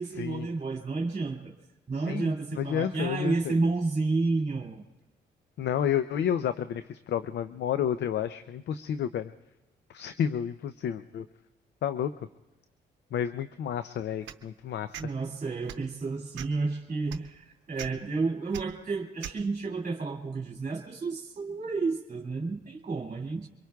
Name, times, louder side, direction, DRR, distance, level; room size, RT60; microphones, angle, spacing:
voice 1, 0.0-1.5 1.9-4.8 15.0-23.5, right 3 dB, 40° right, 0 dB, 2.2 m, -31 dB
voice 2, 1.9-3.5 5.6-9.3 9.9-11.3 11.8-12.1 13.1-15.0, left 9 dB, 70° left, 11 dB, 0.5 m, -31 dB
sound 1, 14.2-14.4 14.9-15.1 15.6-15.9 16.3-16.6 17.1-17.2 17.8-17.9 18.5-18.6 19.2-19.4, right 11 dB, 85° right, 0.7 m, -39 dB
24.5 x 22.5 x 2.3 m, 1.0 s
supercardioid pair, 65°, 19 cm